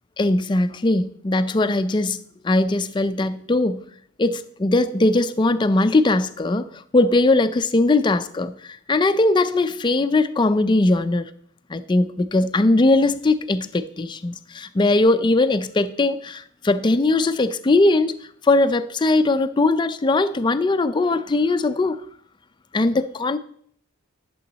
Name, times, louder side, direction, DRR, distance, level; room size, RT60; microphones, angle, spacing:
voice 1, 0.2-2.2 2.4-3.8 4.2-11.3 11.7-18.2 18.4-22.0 22.7-23.4, left 2 dB, 20° left, 0.4 m, -20 dB
11.5 x 7.0 x 4.0 m
head